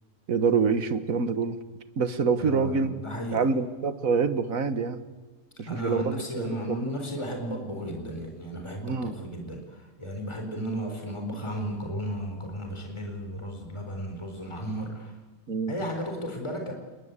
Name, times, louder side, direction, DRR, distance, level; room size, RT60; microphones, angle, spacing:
voice 1, 0.3-1.6 2.0-2.9 3.3-5.0 5.6-6.8 8.8-9.1 15.5-15.7, right 5 dB, 75° right, 11 dB, 1.9 m, -26 dB
voice 2, 2.4-3.5 5.6-15.1 15.7-16.7, equal, 20° left, 3 dB, 4.2 m, -34 dB
29.5 x 21.0 x 8.3 m, 1.3 s
omnidirectional pair, 1.5 m